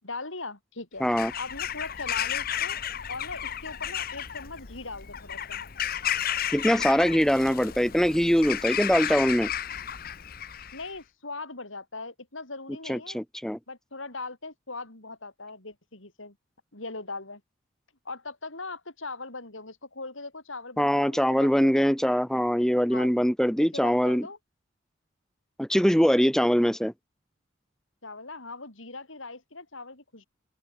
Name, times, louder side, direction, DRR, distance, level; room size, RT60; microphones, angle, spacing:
voice 1, 0.0-2.8 3.1-5.6 10.7-13.2 13.7-16.3 16.7-17.4 18.0-21.8 22.9-23.1 23.7-24.4 28.0-30.3, left 3 dB, 80° left, 6.2 m, -40 dB
Bird vocalization bird call bird song / Crow, 1.0-10.9, left 10 dB, 50° left, 0.9 m, -33 dB
voice 2, 1.0-1.3 6.5-9.5 12.9-13.6 20.8-24.3 25.6-26.9, equal, 5° left, 1.3 m, -23 dB
open air
head